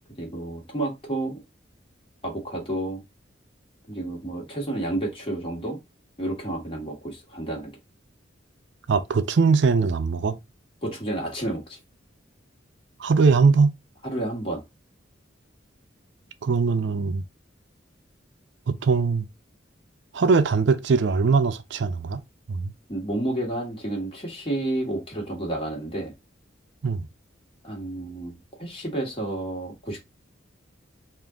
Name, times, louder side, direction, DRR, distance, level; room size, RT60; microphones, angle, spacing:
voice 1, 0.2-1.4 2.2-3.0 3.9-5.8 6.2-7.7 10.8-11.8 14.0-14.6 22.9-26.1 27.6-30.0, right 1 dB, 30° left, 1.4 m, -30 dB
voice 2, 8.9-10.3 13.0-13.8 16.4-17.2 18.7-19.3 20.1-22.2 22.5-22.7 26.8-27.1, right 4 dB, 60° right, 0.4 m, -21 dB
3.7 x 2.5 x 3.5 m
head